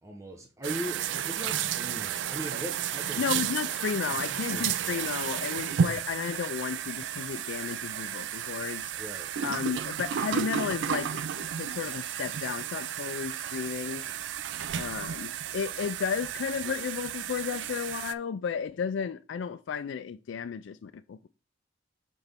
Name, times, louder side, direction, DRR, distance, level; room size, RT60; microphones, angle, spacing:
voice 1, 0.0-3.5 4.1-5.1 9.0-9.3, right 1 dB, 15° right, 0.8 m, -40 dB
sound 1, 0.6-18.1, right 9 dB, 70° right, 0.4 m, -33 dB
voice 2, 3.2-8.9 9.4-14.0 14.8-21.3, left 6 dB, 70° left, 0.3 m, -33 dB
5.9 x 5.3 x 3.5 m
head